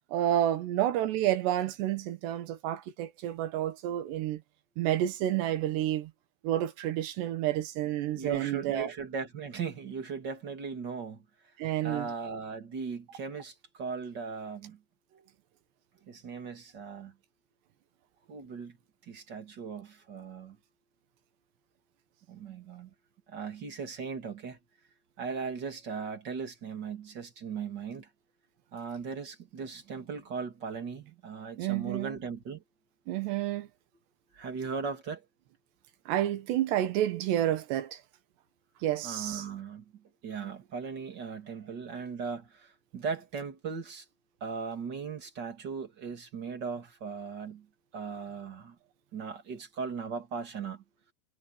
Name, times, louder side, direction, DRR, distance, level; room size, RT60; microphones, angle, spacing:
voice 1, 0.1-4.4 4.8-6.1 6.4-8.9 11.6-12.1 31.6-32.2 33.1-33.7 36.1-38.0 38.8-39.5, right 12 dB, 90° right, 3.7 m, -30 dB
voice 2, 8.1-11.2 11.8-14.8 16.1-17.1 18.3-18.8 19.0-20.6 22.3-22.9 23.3-24.6 25.2-28.1 28.7-32.6 34.3-35.2 39.0-39.8 40.2-44.0 44.4-47.7 47.9-48.8 49.1-50.8, right 5 dB, 35° right, 2.1 m, -38 dB
omnidirectional pair, 4.8 m